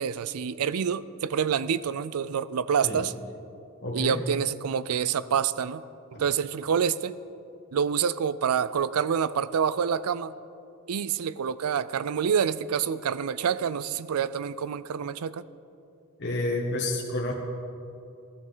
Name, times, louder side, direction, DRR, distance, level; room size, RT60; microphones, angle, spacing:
voice 1, 0.0-3.1 3.9-5.8 6.2-7.1 7.7-10.3 10.9-15.4, right 7 dB, 80° right, 17 dB, 0.4 m, -27 dB
voice 2, 3.8-4.2 16.2-17.3, left 2 dB, 50° left, -2 dB, 1.3 m, -29 dB
15.5 x 13.0 x 3.9 m, 2.6 s
head